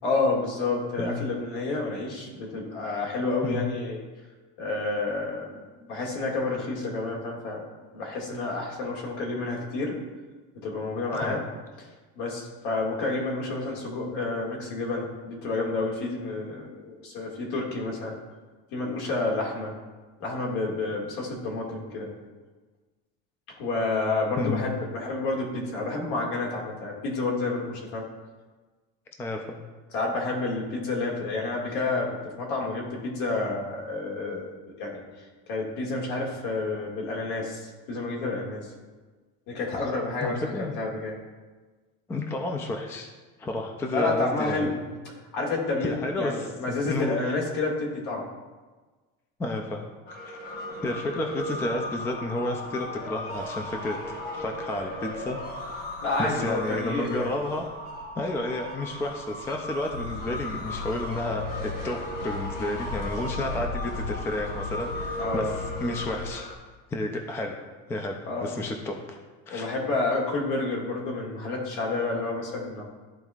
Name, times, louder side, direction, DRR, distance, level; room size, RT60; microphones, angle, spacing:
voice 1, 0.0-4.0 4.6-7.7 7.9-10.0 10.5-11.4 11.8-11.9 12.2-18.2 18.7-19.7 20.2-22.1 23.6-28.1 29.9-34.5 34.8-38.7 39.5-41.2 43.9-44.7 45.0-48.2 56.0-57.3 65.2-65.6 68.3-68.5 69.5-72.8, left 3 dB, 70° left, -2 dB, 2.0 m, -29 dB
voice 2, 24.4-24.8 29.2-29.6 40.2-40.8 42.1-43.1 43.4-44.7 45.8-47.2 49.4-49.8 50.3-50.4 50.8-55.4 56.2-57.7 58.2-66.5 66.9-67.6 67.9-69.2 69.5-69.7, left 2 dB, 10° left, 3 dB, 0.3 m, -31 dB
sound 1, 50.1-66.5, left 1 dB, 30° left, 1.1 m, -37 dB
sound 2, 59.9-66.3, left 4 dB, 90° left, 2.0 m, -37 dB
12.5 x 4.4 x 2.4 m, 1.3 s
cardioid pair, 165°, 31 cm